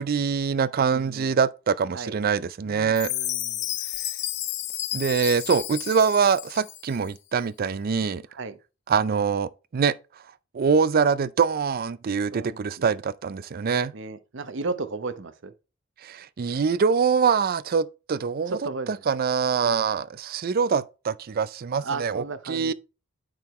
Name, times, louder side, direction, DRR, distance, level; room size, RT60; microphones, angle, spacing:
voice 1, 0.0-3.1 4.9-8.2 8.9-9.9 10.5-13.9 16.0-18.6 19.1-22.7, right 6 dB, 45° right, 0.4 m, -24 dB
voice 2, 0.9-1.4 1.9-2.2 2.6-3.7 8.3-8.6 12.3-13.0 13.9-15.5 18.5-19.1 19.6-20.0 21.8-22.7, right 3 dB, 65° right, 0.8 m, -35 dB
Chime, 3.0-7.0, left 13 dB, 55° left, 0.7 m, -31 dB
8.7 x 4.7 x 3.1 m
head